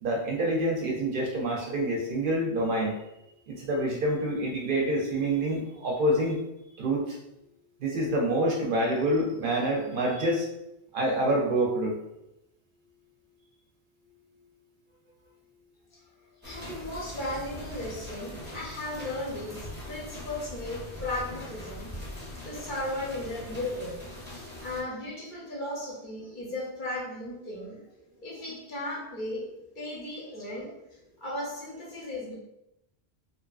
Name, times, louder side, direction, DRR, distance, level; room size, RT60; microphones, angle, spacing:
voice 1, 0.0-3.0 3.5-6.4 6.8-7.2 7.8-10.5 10.9-12.0, right 1 dB, 60° right, -2 dB, 0.6 m, -27 dB
voice 2, 16.4-22.0 22.4-24.1 24.6-27.8 28.2-30.7 31.2-32.3, left 1 dB, 55° left, -4 dB, 0.7 m, -36 dB
sound 1, 16.4-24.8, left 1 dB, 15° right, 0.6 m, -42 dB
2.7 x 2.4 x 2.3 m, 0.87 s
omnidirectional pair, 1.1 m